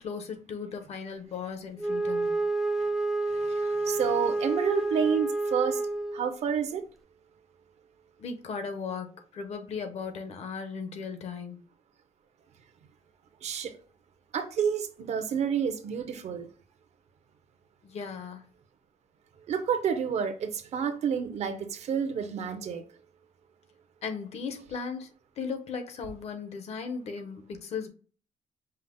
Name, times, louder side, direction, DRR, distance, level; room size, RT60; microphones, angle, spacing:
voice 1, 0.0-2.4 8.2-11.6 17.8-18.4 24.0-27.9, left 5 dB, 60° left, 0.8 m, -37 dB
Wind instrument woodwind instrument, 1.8-6.4, right 2 dB, ahead, 0.3 m, -29 dB
voice 2, 3.3-5.8 6.1-6.8 13.4-13.8 14.3-16.5 19.5-22.8, right 7 dB, 65° right, 0.7 m, -29 dB
5.5 x 2.0 x 3.7 m
cardioid pair, 155°, 12 cm